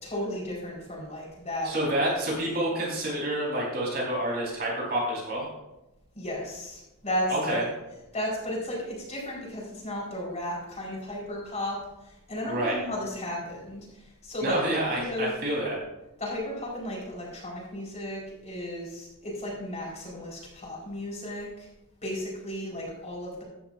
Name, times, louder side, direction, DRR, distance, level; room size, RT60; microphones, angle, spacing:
voice 1, 0.0-2.4 6.1-7.7 8.1-14.6 14.9-15.4 16.2-21.7 22.0-23.4, left 1 dB, 30° left, -3 dB, 4.5 m, -34 dB
voice 2, 1.6-5.5 7.3-7.6 12.4-12.8 14.4-15.8, right 1 dB, 45° right, -3 dB, 4.4 m, -28 dB
15.0 x 11.0 x 2.6 m, 0.96 s
head